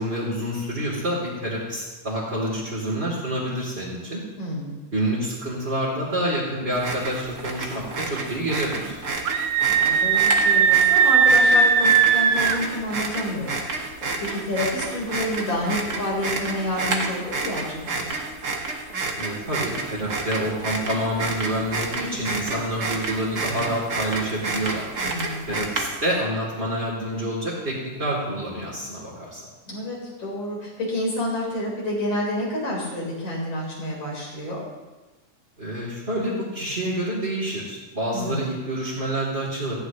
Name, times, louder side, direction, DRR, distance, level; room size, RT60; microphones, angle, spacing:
voice 1, 0.0-4.2 4.9-8.9 19.1-24.9 25.5-29.4 35.6-39.8, right 1 dB, 20° right, -8 dB, 3.1 m, -28 dB
voice 2, 4.4-4.8 9.2-9.4 9.7-18.1 25.0-25.4 29.7-34.6 38.1-38.5, left 1 dB, 50° left, -3 dB, 5.1 m, -29 dB
sound 1, 6.7-26.2, right 3 dB, 40° right, 1.6 m, -30 dB
Screaming, 9.3-12.6, right 6 dB, 70° right, 2.0 m, -18 dB
18.0 x 15.5 x 3.1 m, 1.2 s
omnidirectional pair, 3.5 m